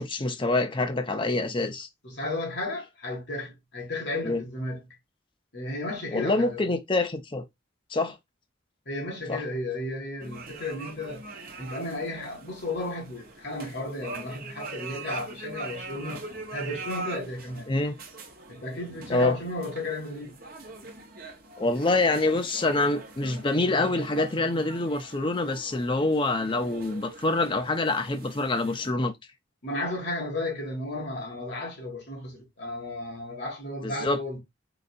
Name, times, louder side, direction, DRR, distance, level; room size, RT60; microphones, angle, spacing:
voice 1, 0.0-1.9 4.2-4.4 6.1-7.4 7.9-8.2 9.3-9.4 17.7-18.0 19.1-19.4 21.6-29.1 33.8-34.2, left 2 dB, 25° left, 0.5 m, -26 dB
voice 2, 2.0-4.8 5.5-6.6 8.9-11.2 11.6-16.2 16.5-17.7 18.5-20.4 29.6-34.4, left 2 dB, 60° left, 1.9 m, -34 dB
sound 1, 10.2-28.9, right 3 dB, 50° right, 0.9 m, -43 dB
4.0 x 3.3 x 2.5 m
head